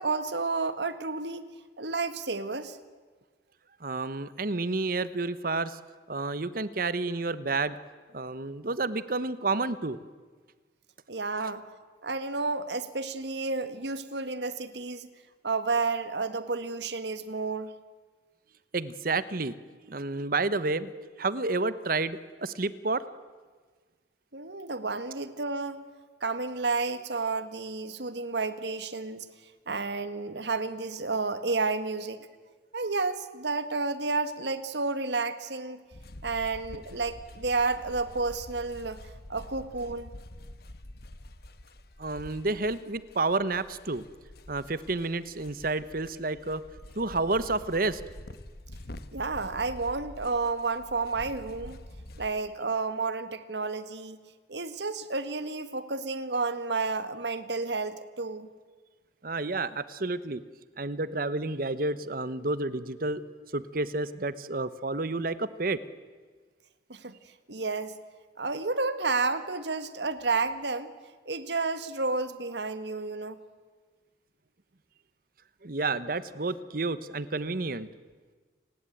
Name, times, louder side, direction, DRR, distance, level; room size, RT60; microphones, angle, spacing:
voice 1, 0.0-1.5 1.8-2.8 11.1-11.7 12.0-15.1 15.4-17.7 24.3-25.8 26.2-29.3 29.7-32.3 32.7-35.8 36.2-39.0 39.3-40.1 49.1-51.8 52.2-54.2 54.5-58.5 66.9-67.2 67.5-68.0 68.4-70.9 71.3-73.4, right 3 dB, 75° right, 12 dB, 1.7 m, -31 dB
voice 2, 3.8-5.8 6.1-7.8 8.1-10.0 11.4-11.5 18.7-20.9 21.2-23.0 42.0-44.0 44.5-46.6 46.9-48.0 59.2-60.4 60.8-63.2 63.5-65.8 75.6-77.9, right 3 dB, 50° right, 15 dB, 1.1 m, -30 dB
sound 1, 35.9-52.3, left 1 dB, 60° left, 1.3 m, -47 dB
30.0 x 20.0 x 9.2 m, 1.4 s
head